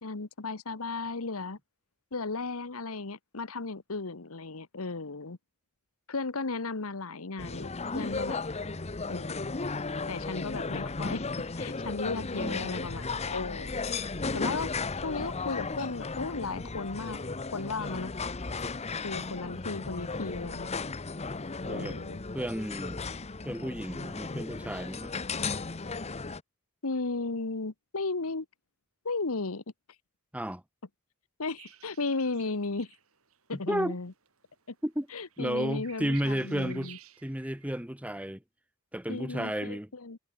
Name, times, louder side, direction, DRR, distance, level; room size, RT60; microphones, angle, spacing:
voice 1, 0.0-1.6 2.1-5.4 6.1-7.7 7.9-8.4 9.1-9.5 10.1-11.3 11.6-13.8 14.3-14.7 15.0-17.2 17.5-18.1 19.0-20.7 21.7-22.2 26.8-28.5 29.0-29.6 31.4-32.9 33.5-34.1 34.7-34.8 35.1-37.0 39.1-40.2, left 3 dB, 80° left, 1.3 m, -35 dB
sound 1, 7.4-26.4, left 4 dB, 30° left, 0.9 m, -35 dB
voice 2, 12.3-12.7 21.7-22.0 22.3-23.0 23.4-25.1 30.3-30.6 33.5-34.0 34.8-35.1 35.4-36.9 37.2-38.4 38.9-39.9, equal, 5° right, 1.3 m, -33 dB
sound 2, 31.6-37.8, right 11 dB, 75° right, 4.8 m, -54 dB
head